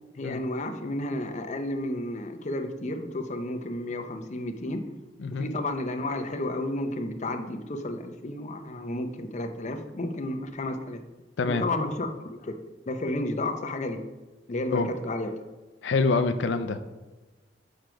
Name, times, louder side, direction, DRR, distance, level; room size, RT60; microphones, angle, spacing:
voice 1, 0.1-4.9 5.3-11.0 11.5-12.6 12.9-14.0 14.5-15.3, left 1 dB, 40° left, 6 dB, 0.6 m, -32 dB
voice 2, 11.4-11.7 14.7-14.9 15.8-16.8, left 3 dB, 90° left, 9 dB, 0.4 m, -25 dB
6.6 x 4.5 x 5.0 m, 1.2 s
head